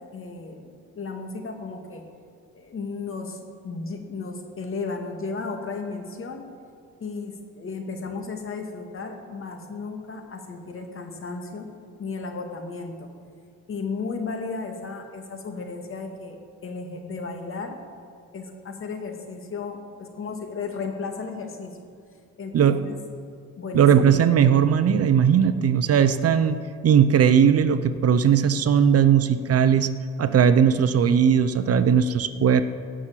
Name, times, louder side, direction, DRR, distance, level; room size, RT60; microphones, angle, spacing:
voice 1, 0.1-2.0 2.5-3.4 3.6-6.4 7.0-11.7 12.0-13.1 13.7-17.8 18.3-21.7 22.4-23.0 23.5-23.9, left 4 dB, 45° left, 4 dB, 2.1 m, -34 dB
voice 2, 23.7-26.6 26.8-29.9 30.2-32.6, right 8 dB, 55° right, 11 dB, 0.7 m, -18 dB
18.5 x 6.2 x 7.5 m, 2.3 s
cardioid pair, 90°, 30 cm